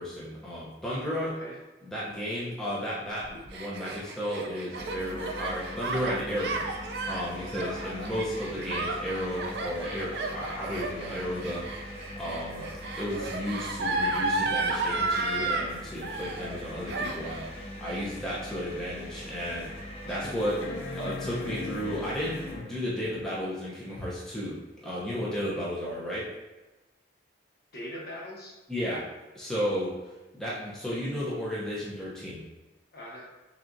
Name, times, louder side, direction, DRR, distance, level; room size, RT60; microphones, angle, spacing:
voice 1, 0.0-1.3 1.8-6.6 7.1-12.7 13.0-20.6 20.9-26.3 28.7-29.0 29.3-29.9 30.3-32.4, equal, 5° left, -7 dB, 0.7 m, -33 dB
voice 2, 1.1-1.5 7.6-7.9 20.0-20.3 27.7-28.6 32.9-33.3, equal, 55° left, -4 dB, 1.1 m, -41 dB
Gasp, 3.2-15.7 16.0-16.6 16.9-17.5, right 2 dB, 65° right, 0.4 m, -33 dB
sound 1, 4.8-22.6, left 1 dB, 30° left, 1.1 m, -42 dB
sound 2, 18.5-18.6 19.1-19.2 20.6-23.1 24.8-24.9, left 3 dB, 80° left, 0.5 m, -39 dB
5.9 x 2.4 x 2.6 m, 1.1 s
head